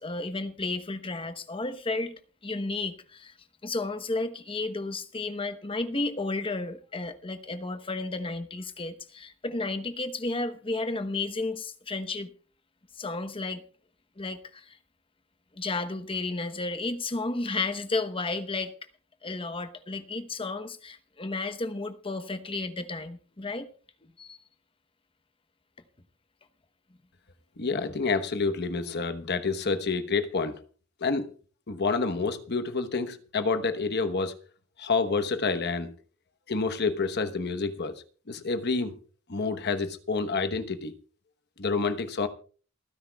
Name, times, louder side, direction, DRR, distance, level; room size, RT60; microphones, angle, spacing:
voice 1, 0.0-3.3 3.6-12.3 12.9-13.6 14.2-14.8 15.5-18.8 19.2-23.7 24.0-24.4, left 3 dB, 25° left, 0.9 m, -33 dB
voice 2, 27.6-30.6 31.0-31.3 31.7-34.3 34.8-35.9 36.5-37.9 38.3-38.9 39.3-40.9 41.6-42.3, left 4 dB, 55° left, 1.1 m, -28 dB
28.0 x 10.0 x 2.3 m
head